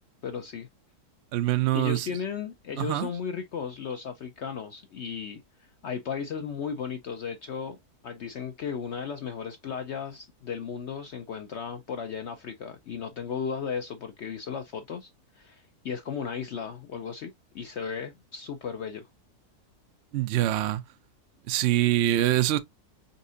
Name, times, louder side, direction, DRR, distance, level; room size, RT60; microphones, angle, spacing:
voice 1, 0.2-0.7 1.7-7.8 8.0-15.1 15.4-19.1, left 6 dB, 65° left, 0.7 m, -35 dB
voice 2, 1.3-2.1 2.8-3.1 20.1-20.8 21.5-22.6, right 14 dB, 75° right, 0.6 m, -24 dB
4.2 x 3.6 x 2.6 m
omnidirectional pair, 1.7 m